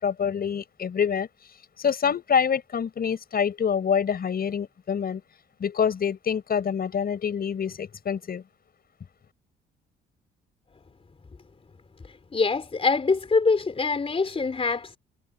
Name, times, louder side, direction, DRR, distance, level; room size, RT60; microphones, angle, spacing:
voice 1, 0.0-1.3 1.8-5.2 5.6-8.4, left 7 dB, 50° left, 5.5 m, -26 dB
voice 2, 12.3-15.0, left 4 dB, 30° left, 3.8 m, -24 dB
cardioid pair, 90°, 20 cm